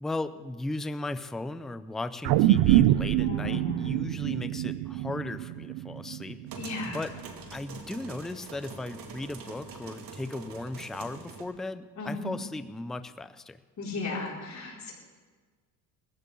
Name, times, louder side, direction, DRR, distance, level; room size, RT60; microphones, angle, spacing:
voice 1, 0.0-6.4 6.9-7.1 7.5-13.6, left 2 dB, ahead, 12 dB, 0.4 m, -36 dB
sound 1, 2.2-6.7 7.2-7.3, right 15 dB, 65° right, 0.6 m, -25 dB
voice 2, 3.2-4.1 6.6-7.0 12.0-12.3 13.8-14.9, left 2 dB, 35° left, -4 dB, 5.6 m, -35 dB
sound 2, 6.5-11.4, right 4 dB, 45° right, 2.5 m, -44 dB
20.5 x 15.0 x 3.8 m, 1.4 s
supercardioid pair, 105°, 47 cm